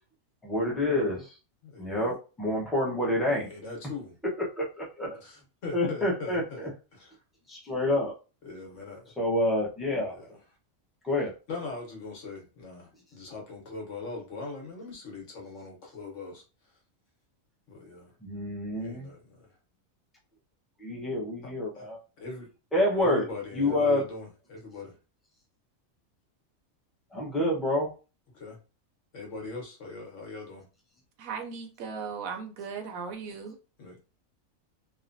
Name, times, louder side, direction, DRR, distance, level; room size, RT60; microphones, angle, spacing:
voice 1, 0.4-1.4 1.8-3.5 4.4-5.2 5.7-6.7 7.5-8.1 9.2-10.4 11.0-11.3 18.2-19.1 20.8-22.0 22.7-23.2 23.5-24.0 27.1-27.9, left 1 dB, ahead, 0.5 m, -28 dB
voice 2, 1.6-2.1 3.3-4.2 5.2-7.2 8.4-9.1 10.1-10.2 11.5-16.4 17.7-18.1 18.7-19.6 21.4-21.9 22.2-22.5 23.0-25.0 28.3-28.6 29.1-30.7 33.8-34.0, left 3 dB, 60° left, 1.3 m, -41 dB
voice 3, 31.2-33.6, right 6 dB, 75° right, 1.0 m, -37 dB
3.2 x 2.1 x 2.6 m
omnidirectional pair, 1.5 m